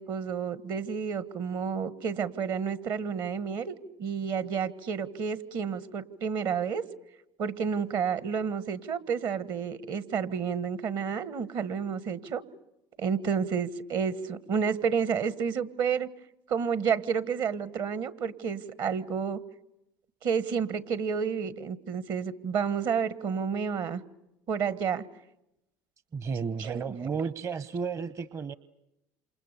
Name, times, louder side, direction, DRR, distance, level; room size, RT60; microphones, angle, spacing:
voice 1, 0.0-6.8 7.4-12.4 13.0-16.1 16.5-19.4 20.2-24.0 24.5-25.0 26.6-26.8, right 6 dB, 60° right, 16 dB, 1.5 m, -30 dB
voice 2, 26.1-28.5, right 5 dB, 35° right, 16 dB, 0.9 m, -33 dB
28.0 x 27.0 x 6.9 m, 0.89 s
supercardioid pair, 80°, 9 cm